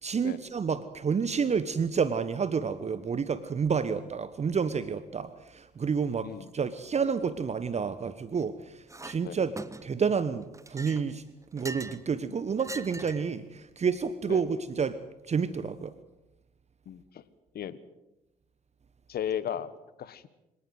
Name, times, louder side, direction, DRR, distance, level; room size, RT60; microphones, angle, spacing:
voice 1, 0.0-9.5 9.8-10.4 10.7-11.2 11.5-15.0 15.3-15.9, right 6 dB, 35° right, 14 dB, 1.1 m, -29 dB
Chink clink, 8.9-9.2 9.6-10.1 10.5-12.0 12.6-13.3, right 2 dB, 15° right, 1.3 m, -42 dB
voice 2, 16.8-17.2 17.5-17.8 19.1-20.3, left 9 dB, 50° left, 16 dB, 1.4 m, -36 dB
25.0 x 18.5 x 7.9 m, 0.95 s
figure-of-eight pair, 45°, 20 cm